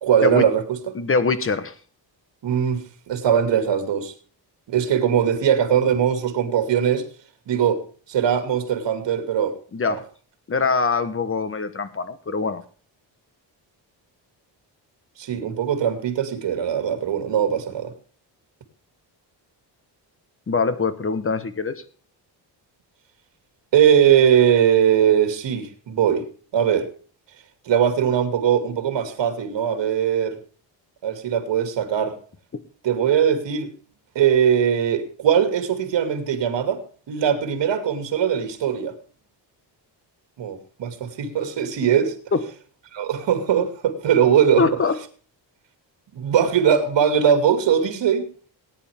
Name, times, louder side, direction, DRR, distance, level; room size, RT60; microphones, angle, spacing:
voice 1, 0.0-0.9 2.4-4.1 4.7-7.0 7.5-7.8 8.1-9.5 9.9-10.0 15.2-17.9 23.7-26.3 26.5-26.9 27.7-30.4 31.0-32.2 32.8-33.7 34.1-38.9 40.4-42.2 42.9-44.7 46.1-48.2, right 8 dB, 80° right, 2.6 m, -20 dB
voice 2, 0.9-1.7 9.7-10.0 10.5-12.6 20.5-21.8 42.3-42.4 44.6-45.0, left 4 dB, 30° left, 1.3 m, -23 dB
18.5 x 10.0 x 3.5 m
wide cardioid pair, 145°, 43 cm